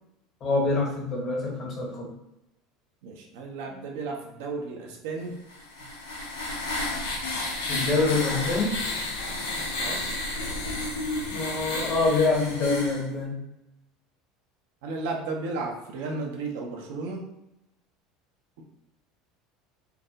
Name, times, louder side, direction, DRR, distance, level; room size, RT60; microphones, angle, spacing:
voice 1, 0.4-2.1 7.7-8.8 11.3-13.4, left 3 dB, 40° left, 0 dB, 0.8 m, -26 dB
voice 2, 3.0-5.4 5.8-5.9 9.8-10.1 14.8-17.3, right 3 dB, 70° right, 1 dB, 0.5 m, -34 dB
sound 1, 5.5-13.0, left 2 dB, 80° left, 0.5 m, -31 dB
2.3 x 2.0 x 2.6 m, 0.91 s
hypercardioid pair, 75°, 0 cm